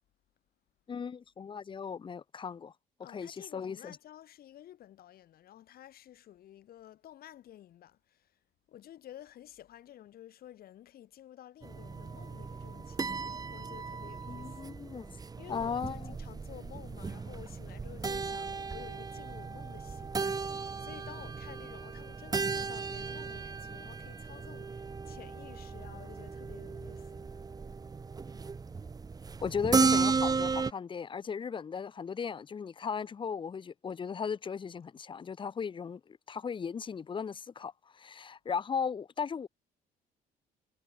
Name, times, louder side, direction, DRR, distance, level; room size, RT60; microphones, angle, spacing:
voice 1, 0.9-2.7 3.1-4.0 14.3-15.2 15.5-16.1 29.4-39.5, left 6 dB, 30° left, 0.8 m, -37 dB
voice 2, 3.0-8.3 8.7-14.7 15.1-27.3, left 12 dB, 65° left, 3.7 m, -52 dB
sound 1, 11.6-30.7, right 4 dB, 20° right, 1.0 m, -35 dB
cardioid pair, 110°, 17 cm